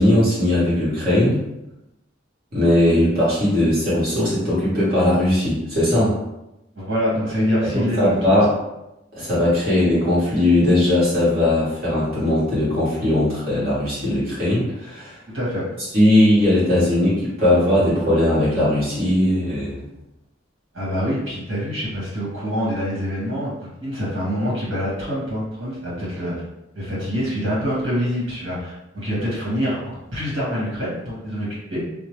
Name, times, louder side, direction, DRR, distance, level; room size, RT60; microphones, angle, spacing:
voice 1, 0.0-1.4 2.5-6.2 7.7-8.5 9.1-15.2 15.9-19.8, left 1 dB, 50° right, -9 dB, 1.4 m, -19 dB
voice 2, 6.7-8.3 15.3-15.6 20.7-26.3 26.7-29.8 30.1-31.8, equal, 70° right, -7 dB, 1.4 m, -25 dB
2.9 x 2.1 x 3.0 m, 0.90 s
head